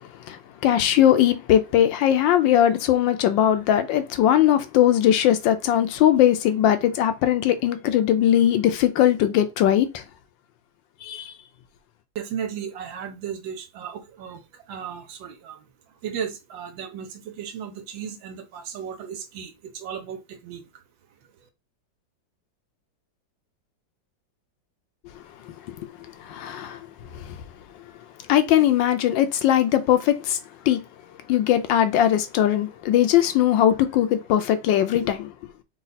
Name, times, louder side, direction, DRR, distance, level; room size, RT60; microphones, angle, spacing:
voice 1, 0.3-10.0 11.0-11.3 25.7-25.9 26.2-26.9 27.1-27.4 28.3-30.4 30.7-30.8 31.3-35.3, left 11 dB, 75° left, 1.2 m, -20 dB
voice 2, 12.1-14.4 14.7-15.6 16.0-20.6, right 8 dB, 80° right, 1.5 m, -35 dB
4.0 x 2.3 x 4.0 m
omnidirectional pair, 2.1 m